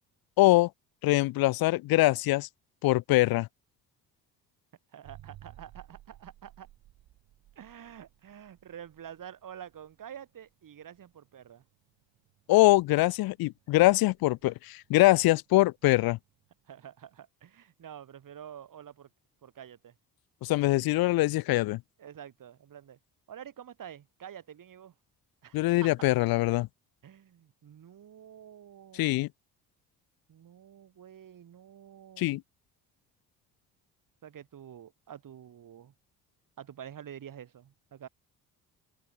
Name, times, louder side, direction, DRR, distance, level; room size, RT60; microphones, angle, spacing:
voice 1, 0.4-0.7 1.0-2.5 2.8-3.5 12.5-16.2 20.4-21.8 25.5-26.7 29.0-29.3 32.2-32.4, left 18 dB, 70° left, 0.6 m, -23 dB
voice 2, 4.9-6.7 7.5-11.6 16.7-19.1 19.4-19.9 22.0-23.0 23.3-24.9 25.4-25.9 27.0-29.2 30.3-32.4 34.2-35.9 36.6-38.1, right 9 dB, 55° right, 6.4 m, -48 dB
sound 1, 5.0-16.7, right 15 dB, 75° right, 5.3 m, -57 dB
open air
supercardioid pair, 75°, 38 cm